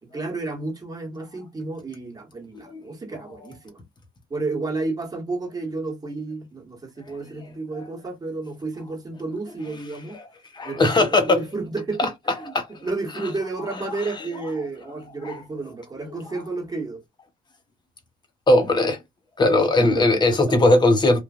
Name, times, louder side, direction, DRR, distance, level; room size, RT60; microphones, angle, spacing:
voice 1, 0.0-3.8 4.3-10.2 10.6-17.0 19.8-20.5, right 3 dB, 20° right, 1.3 m, -31 dB
voice 2, 2.5-2.8 7.1-7.5 10.1-10.3 10.5-11.4 12.0-12.1 12.5-12.9 13.1-13.3 13.6-14.3 15.2-15.4 18.5-19.0 19.4-21.2, left 2 dB, 25° left, 1.0 m, -20 dB
3.1 x 2.4 x 2.4 m
cardioid pair, 110°, 17 cm